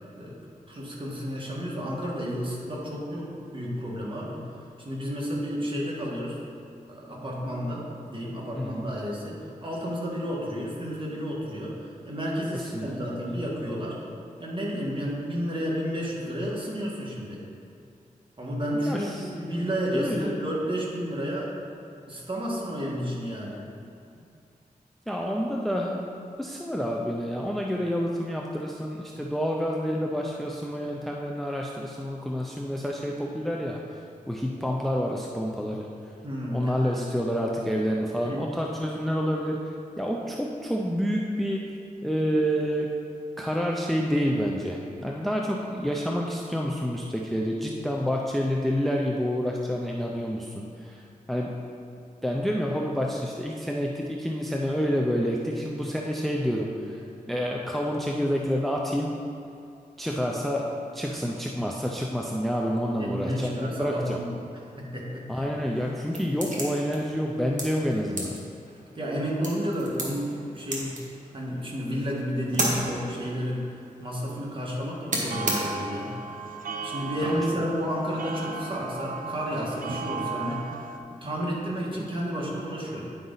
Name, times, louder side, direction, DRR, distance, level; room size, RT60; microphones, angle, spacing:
voice 1, 0.7-4.4 4.8-6.4 6.9-14.1 14.4-17.4 18.4-21.5 22.1-23.6 24.2-24.3 36.2-37.1 38.2-38.4 60.2-60.4 63.0-64.4 64.8-65.4 69.0-71.0 71.3-76.1 76.8-80.7 81.1-83.2, equal, 35° right, -4 dB, 1.6 m, -31 dB
voice 2, 8.5-8.9 12.5-13.0 18.7-19.3 19.9-20.4 25.1-35.9 36.5-41.8 42.0-43.0 43.4-51.0 51.3-51.6 52.2-59.1 60.0-64.2 65.3-68.4 77.2-77.6, equal, ahead, -1 dB, 0.5 m, -28 dB
sound 1, 65.5-76.1, right 1 dB, 60° right, 1.5 m, -35 dB
sound 2, 75.3-81.0, right 4 dB, 75° right, 0.5 m, -36 dB
9.6 x 5.1 x 3.9 m, 2.5 s
wide cardioid pair, 100°, 14 cm